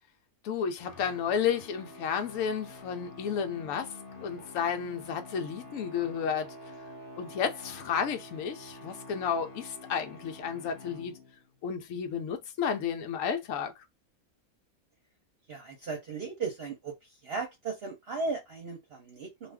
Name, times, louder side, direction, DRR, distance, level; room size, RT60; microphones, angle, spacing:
voice 1, 0.4-3.9 4.2-6.5 7.2-11.2 11.6-13.7, left 7 dB, 70° left, 1.0 m, -32 dB
sound 1, 0.8-11.6, left 1 dB, 50° left, 0.7 m, -48 dB
voice 2, 15.5-19.5, right 4 dB, 55° right, 0.8 m, -36 dB
2.4 x 2.4 x 3.4 m
omnidirectional pair, 1.5 m